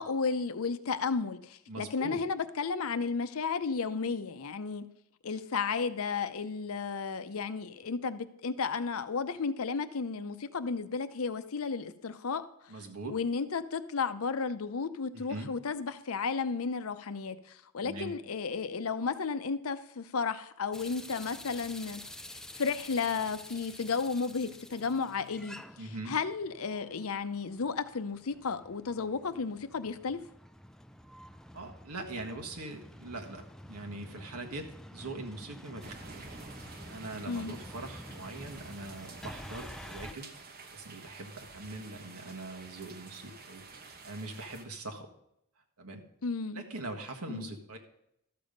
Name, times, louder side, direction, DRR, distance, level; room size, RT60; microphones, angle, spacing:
voice 1, 0.0-4.8 5.2-12.4 13.1-22.0 22.5-25.5 26.1-30.2 37.3-37.5 46.2-46.6 47.3-47.5, left 5 dB, 70° left, 12 dB, 0.6 m, -33 dB
voice 2, 1.7-2.2 12.7-13.1 15.1-15.5 17.8-18.1 25.8-26.1 31.5-36.3 36.9-40.3 40.7-43.6 44.0-45.1 45.8-46.0 46.5-47.8, right 2 dB, 85° right, 3 dB, 1.6 m, -42 dB
sound 1, 20.7-40.1, left 1 dB, ahead, 0.3 m, -49 dB
sound 2, 35.8-44.6, right 4 dB, 45° right, 1.1 m, -50 dB
13.0 x 7.0 x 5.2 m, 0.78 s
head